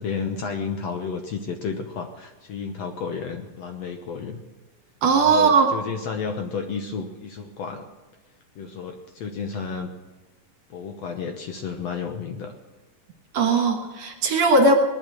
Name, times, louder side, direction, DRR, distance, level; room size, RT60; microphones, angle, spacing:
voice 1, 0.0-4.4 5.1-7.9 8.6-9.9 10.7-12.5, left 5 dB, 65° left, 4 dB, 1.8 m, -32 dB
voice 2, 5.0-5.7 13.3-14.8, right 3 dB, 55° right, 3 dB, 2.4 m, -18 dB
19.5 x 11.5 x 6.3 m, 1.2 s
omnidirectional pair, 3.9 m